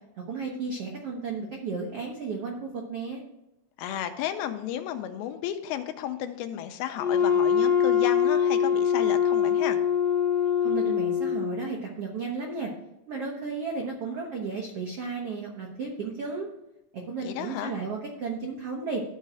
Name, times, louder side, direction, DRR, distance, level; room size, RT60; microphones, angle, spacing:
voice 1, 0.3-3.2 10.6-12.7 13.1-16.5 16.9-19.0, right 4 dB, 80° right, 0 dB, 1.3 m, -33 dB
voice 2, 3.8-9.8 17.2-17.7, left 10 dB, 80° left, 8 dB, 2.6 m, -33 dB
Wind instrument woodwind instrument, 7.0-11.7, left 8 dB, 60° left, 2.7 m, -23 dB
13.0 x 4.4 x 4.9 m, 0.89 s
omnidirectional pair, 4.4 m